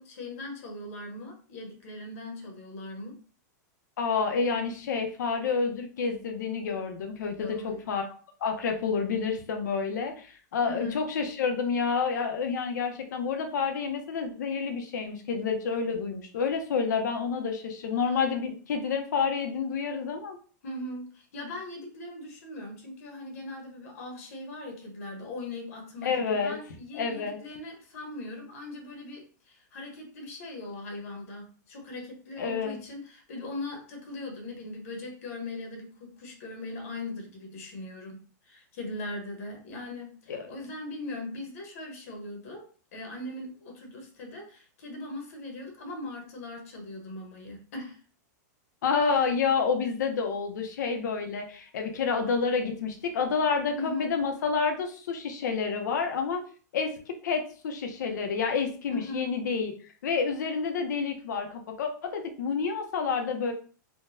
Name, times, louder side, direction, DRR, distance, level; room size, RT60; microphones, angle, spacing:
voice 1, 0.0-3.2 7.4-7.9 10.6-11.1 18.0-18.2 20.6-48.0 53.7-54.2 58.9-59.3, left 2 dB, 50° left, 2 dB, 1.0 m, -40 dB
voice 2, 4.0-20.4 26.0-26.5 26.9-27.4 32.4-32.8 40.3-40.5 48.8-56.4 56.7-59.7 60.0-63.5, left 5 dB, 75° left, 5 dB, 0.8 m, -29 dB
3.7 x 2.2 x 2.6 m, 0.39 s
supercardioid pair, 175°, 10 cm